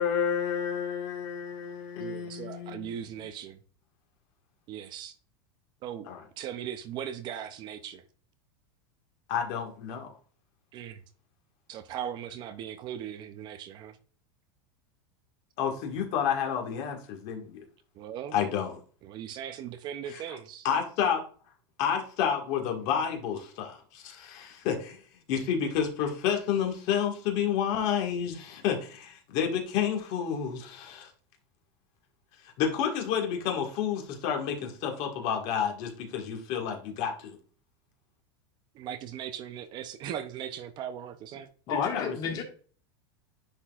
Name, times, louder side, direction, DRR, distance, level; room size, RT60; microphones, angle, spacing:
voice 1, 0.0-3.3 6.1-6.2 9.3-10.1 15.6-17.6 18.3-18.7 20.1-20.4 20.6-21.2 21.8-25.0 25.3-31.1 32.6-37.4 41.7-42.4, left 8 dB, 50° left, 1.7 m, -30 dB
voice 2, 2.0-3.6 4.7-5.1 5.8-6.1 6.4-8.0 10.7-11.0 11.7-14.0 17.9-18.5 19.0-20.7 38.8-41.5, right 9 dB, 35° right, 0.5 m, -39 dB
voice 3, 41.7-42.4, left 5 dB, 30° left, 1.6 m, -33 dB
9.9 x 4.3 x 2.4 m
supercardioid pair, 150°, 13 cm